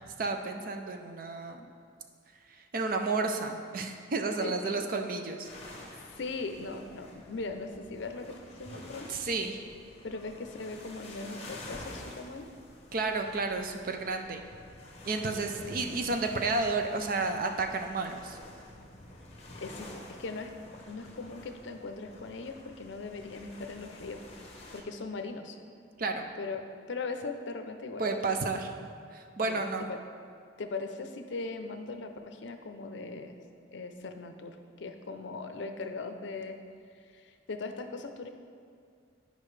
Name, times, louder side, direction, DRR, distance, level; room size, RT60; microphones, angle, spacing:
voice 1, 0.2-1.7 2.5-5.9 8.7-8.8 9.1-9.6 12.9-14.4 15.0-18.4 26.0-26.3 28.0-28.7 29.1-29.8, right 3 dB, 45° right, 5 dB, 0.5 m, -32 dB
voice 2, 4.4-4.8 6.0-9.1 10.0-12.5 15.2-15.4 19.6-20.5 20.9-24.2 24.7-25.6 26.4-26.6 26.9-28.3 29.4-29.6 29.9-30.0 30.6-33.4 33.7-36.6 37.0-38.3, left 3 dB, 70° left, 6 dB, 0.5 m, -39 dB
sound 1, 5.4-24.8, left 1 dB, 35° left, 1.1 m, -49 dB
10.5 x 5.2 x 3.2 m, 2.2 s
head